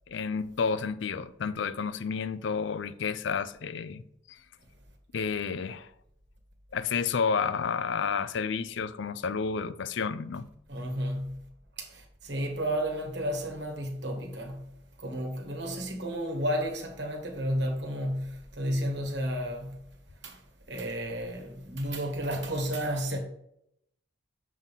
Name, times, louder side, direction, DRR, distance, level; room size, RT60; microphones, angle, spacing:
voice 1, 0.1-4.0 4.3-4.4 5.1-5.9 6.7-10.5, left 5 dB, 65° left, 0.4 m, -30 dB
voice 2, 10.7-11.3 11.8-14.6 15.0-19.8 20.2-20.4 20.7-23.2, equal, 55° right, 1.5 m, -32 dB
7.2 x 3.7 x 5.7 m
head